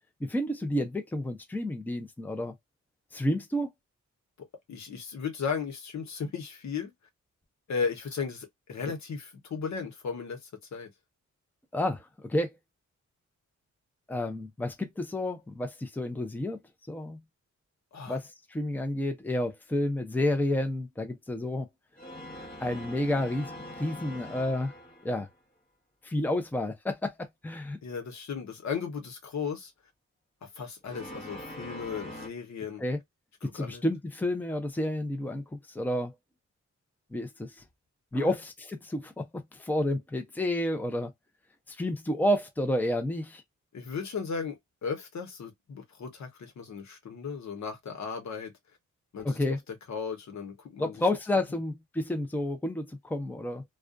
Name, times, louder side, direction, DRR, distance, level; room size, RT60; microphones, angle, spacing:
voice 1, 0.2-2.5 3.1-3.7 11.7-12.0 12.3-12.5 14.1-16.6 16.9-17.2 18.1-21.7 22.6-24.7 25.0-25.3 26.0-27.8 32.8-33.0 33.4-36.1 37.1-37.5 38.1-41.1 41.8-43.4 49.2-49.6 50.8-53.6, left 1 dB, 5° left, 0.6 m, -30 dB
voice 2, 4.4-6.9 7.7-10.9 17.9-18.2 27.8-29.7 30.4-32.8 33.4-33.8 38.1-38.3 43.7-48.5 49.1-49.6 49.9-51.0, left 6 dB, 70° left, 1.0 m, -36 dB
sound 1, 21.9-25.3 30.8-32.3, left 1 dB, 30° left, 1.1 m, -43 dB
2.4 x 2.3 x 2.4 m
wide cardioid pair, 100°, 29 cm